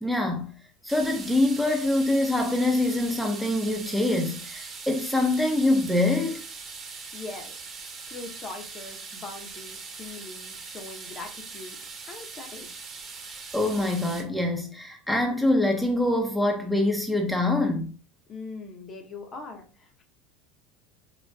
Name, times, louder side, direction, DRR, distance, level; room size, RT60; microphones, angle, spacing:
voice 1, 0.0-0.5 0.8-6.4 13.5-17.9, left 2 dB, ahead, 0.6 m, -24 dB
sound 1, 0.9-14.2, right 4 dB, 35° right, 1.1 m, -41 dB
voice 2, 7.1-7.5 8.1-11.8 12.1-13.0 18.3-20.0, left 3 dB, 35° left, 0.7 m, -41 dB
3.9 x 2.2 x 2.2 m
supercardioid pair, 105°, 0 cm